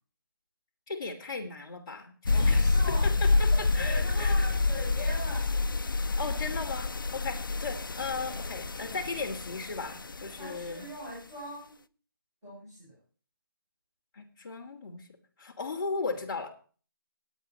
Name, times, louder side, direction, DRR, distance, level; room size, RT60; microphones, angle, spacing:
voice 1, 0.9-4.5 6.1-10.8 14.1-15.1 15.4-16.5, left 4 dB, 10° left, -5 dB, 1.4 m, -36 dB
sound 1, 2.3-10.7, left 3 dB, 65° left, 0.6 m, -28 dB
voice 2, 2.3-5.5 10.4-11.8 12.4-13.0, equal, 15° right, -11 dB, 6.8 m, -41 dB
19.5 x 9.3 x 2.9 m, 0.39 s
figure-of-eight pair, 180°, 12 cm